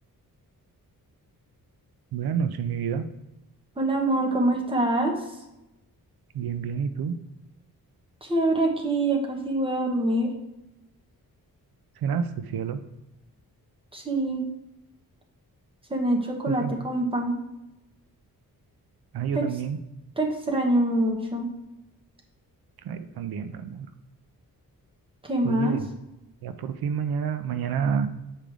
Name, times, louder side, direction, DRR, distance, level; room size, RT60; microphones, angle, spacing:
voice 1, 2.1-3.0 6.3-7.1 12.0-12.2 12.5-12.8 16.6-16.7 19.1-19.8 22.9-23.9 25.4-25.8 26.4-28.1, right 7 dB, 85° right, 10 dB, 0.6 m, -28 dB
voice 2, 3.8-5.2 8.2-10.3 13.9-14.4 15.9-17.4 19.3-19.5 20.2-21.5 25.2-25.8, right 1 dB, 15° right, 0 dB, 1.2 m, -25 dB
7.6 x 5.0 x 3.4 m, 0.94 s
wide cardioid pair, 145°, 36 cm